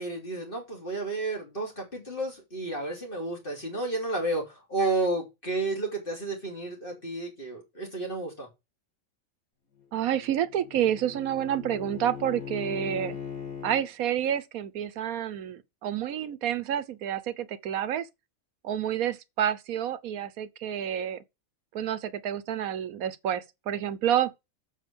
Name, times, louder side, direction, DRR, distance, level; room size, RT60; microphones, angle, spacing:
voice 1, 0.0-8.5, right 2 dB, 40° left, 3.5 m, -31 dB
Bowed string instrument, 9.8-13.9, left 7 dB, 80° left, 2.4 m, -40 dB
voice 2, 9.9-13.2 13.6-18.1 18.6-21.2 21.7-24.3, right 10 dB, 90° right, 1.3 m, -29 dB
7.5 x 6.3 x 6.2 m
omnidirectional pair, 1.4 m